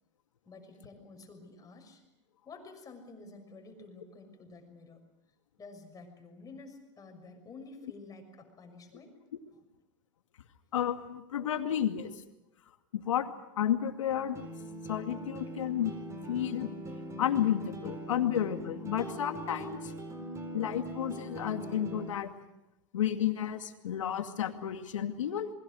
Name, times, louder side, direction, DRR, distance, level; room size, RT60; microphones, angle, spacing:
voice 1, 0.4-2.0 2.4-5.1 5.6-9.2 9.5-9.6, left 3 dB, 20° left, 5 dB, 6.2 m, -50 dB
voice 2, 10.7-12.1 12.9-13.3 13.6-14.4 14.9-16.0 16.3-16.7 17.2-19.9 20.5-22.3 22.9-25.5, left 10 dB, 85° left, 6 dB, 2.3 m, -31 dB
sound 1, 14.1-22.1, right 1 dB, 20° right, 4.3 m, -42 dB
28.0 x 22.0 x 6.4 m, 0.90 s
hypercardioid pair, 115°, 16 cm